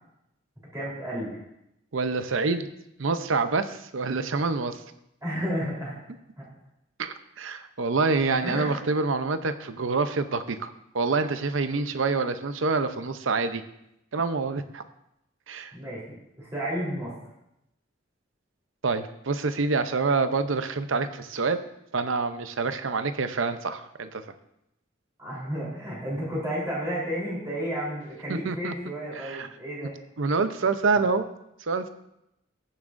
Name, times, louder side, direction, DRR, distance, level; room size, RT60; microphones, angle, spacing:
voice 1, 0.7-1.4 5.2-6.0 6.4-6.5 8.4-8.7 11.7-11.8 15.7-16.0 16.4-17.1 25.2-29.9, equal, 15° right, -6 dB, 3.7 m, -32 dB
voice 2, 1.9-2.7 3.0-4.8 7.0-13.6 14.1-14.8 15.5-15.7 18.8-21.6 21.9-24.2 28.3-28.7 29.2-29.5 30.2-31.2 31.6-31.9, right 4 dB, 80° right, 10 dB, 0.7 m, -27 dB
20.0 x 7.2 x 2.6 m, 0.83 s
head